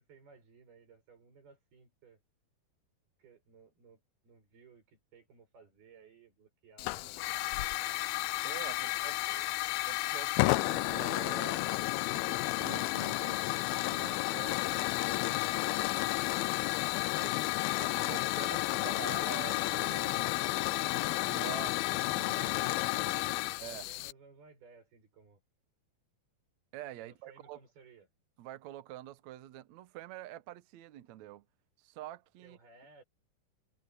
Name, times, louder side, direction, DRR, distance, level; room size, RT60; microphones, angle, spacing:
voice 1, 0.0-2.2 3.2-7.9 8.8-9.5 15.8-16.7 17.2-17.4 18.1-18.2 22.5-25.4 27.0-28.1 32.4-33.0, right 4 dB, 90° right, 9.7 m, -59 dB
Hiss / Fire, 6.8-24.1, left 20 dB, 85° left, 2.4 m, -32 dB
voice 2, 8.4-9.2 9.9-11.7 12.1-15.9 17.2-20.2 20.9-22.6 23.6-23.9 26.7-27.6 28.4-31.5 31.8-32.6, right 14 dB, 70° right, 1.9 m, -47 dB
omnidirectional pair, 4.3 m